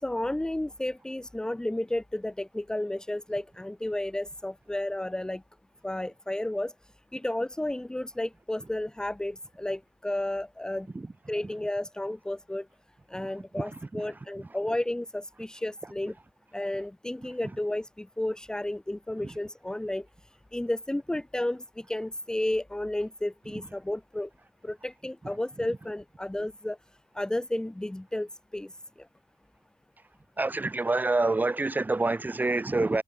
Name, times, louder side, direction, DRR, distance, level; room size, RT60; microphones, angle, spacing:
voice 1, 0.0-5.4 5.8-6.7 7.1-10.9 11.3-12.7 13.1-16.1 16.5-20.1 20.5-24.3 24.6-26.8 27.1-28.8, left 1 dB, 5° left, 2.6 m, -32 dB
voice 2, 30.4-33.0, right 2 dB, 15° right, 4.3 m, -26 dB
wide cardioid pair, 180°, 12 cm